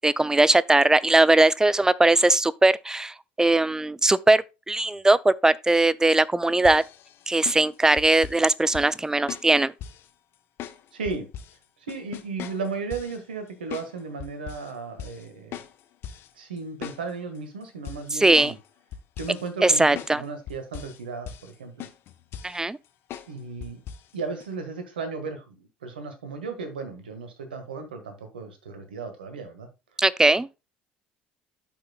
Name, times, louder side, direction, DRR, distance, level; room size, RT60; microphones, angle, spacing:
voice 1, 0.0-6.8 7.3-9.7 18.1-18.5 19.6-20.2 22.4-22.8 30.0-30.5, right 2 dB, 10° right, 0.4 m, -20 dB
sound 1, 6.6-8.4 8.7-9.0 9.3-10.1 10.6-11.5 11.9-13.2 13.7-13.9 14.2-14.7 15.0-15.2 15.5-16.3 16.6-17.4 17.8-18.7 18.9-19.5 19.9-20.2 20.5-21.0 21.3-21.5 21.8-22.6 23.1-23.3 23.6-24.1 24.4-24.5, left 9 dB, 55° left, 0.9 m, -39 dB
voice 2, 10.9-11.3 11.9-15.6 16.4-18.6 19.2-21.9 23.3-23.8 24.1-29.7, right 4 dB, 80° right, 1.4 m, -35 dB
12.5 x 5.6 x 2.2 m
figure-of-eight pair, 60°, 5 cm